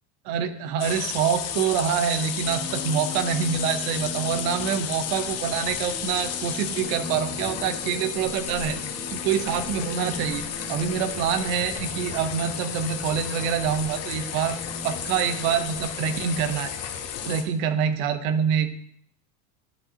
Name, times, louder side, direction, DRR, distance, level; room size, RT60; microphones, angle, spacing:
voice 1, 0.2-8.8 9.1-10.4 10.7-14.6 14.8-16.7 17.2-18.7, right 7 dB, 70° right, 11 dB, 0.9 m, -26 dB
sound 1, 0.8-17.4, left 8 dB, 35° left, 0.8 m, -33 dB
sound 2, 2.4-15.6, left 2 dB, 10° right, 1.7 m, -41 dB
10.5 x 5.1 x 2.8 m, 0.66 s
supercardioid pair, 125°, 42 cm